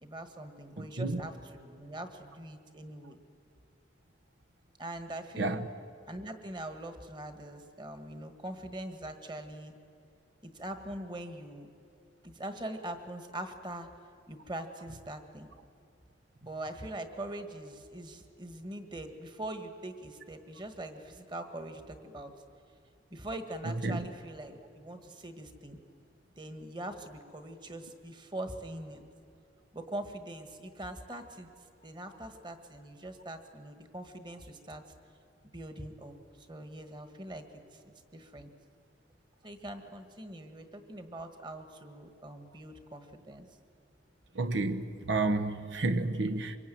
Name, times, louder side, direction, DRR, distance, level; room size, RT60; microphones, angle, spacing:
voice 1, 0.0-3.2 4.8-5.6 6.1-9.8 10.4-11.7 12.2-13.9 14.3-15.5 16.4-22.3 23.1-25.8 26.4-29.0 29.7-31.5 31.8-34.8 35.5-37.4 37.7-38.5 39.4-43.5, right 1 dB, 25° right, 1.7 m, -42 dB
voice 2, 0.8-1.2 5.4-5.6 23.8-24.1 44.4-46.6, right 2 dB, 80° right, 1.1 m, -30 dB
25.0 x 23.0 x 9.3 m
head